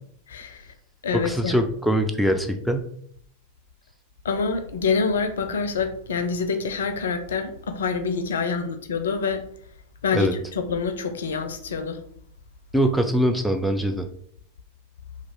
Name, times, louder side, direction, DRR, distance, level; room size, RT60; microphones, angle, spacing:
voice 1, 0.3-0.7 1.0-1.5 4.2-9.5 10.0-12.0, left 5 dB, 65° left, 0.4 m, -26 dB
voice 2, 1.1-2.9 10.1-10.3 12.7-14.1, equal, ahead, 0.3 m, -22 dB
2.9 x 2.3 x 3.5 m
figure-of-eight pair, 90°, 0 cm